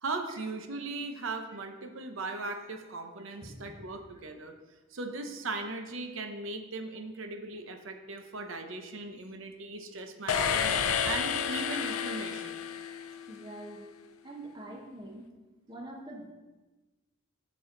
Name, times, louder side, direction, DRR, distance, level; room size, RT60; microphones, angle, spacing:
voice 1, 0.0-4.5 4.9-12.6, right 3 dB, 70° right, 6 dB, 0.8 m, -38 dB
voice 2, 3.4-3.8 13.3-13.8 14.2-15.3 15.7-16.3, right 1 dB, 20° right, 0 dB, 1.0 m, -44 dB
sound 1, 10.3-13.4, left 7 dB, 85° left, 0.5 m, -30 dB
6.9 x 6.3 x 3.8 m, 1.2 s
head